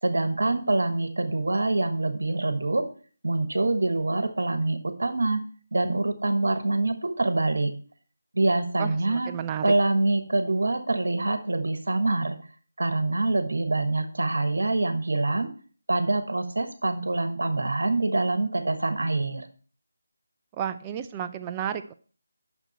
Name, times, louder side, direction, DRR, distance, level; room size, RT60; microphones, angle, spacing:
voice 1, 0.0-2.8 3.2-5.4 5.7-7.7 8.3-9.3 9.6-12.4 12.8-15.5 15.9-19.5, right 2 dB, 65° right, 8 dB, 1.3 m, -25 dB
voice 2, 8.8-9.7 20.6-21.9, right 9 dB, 15° right, 9 dB, 0.5 m, -32 dB
9.0 x 6.3 x 4.3 m, 0.42 s
figure-of-eight pair, 160°, 0 cm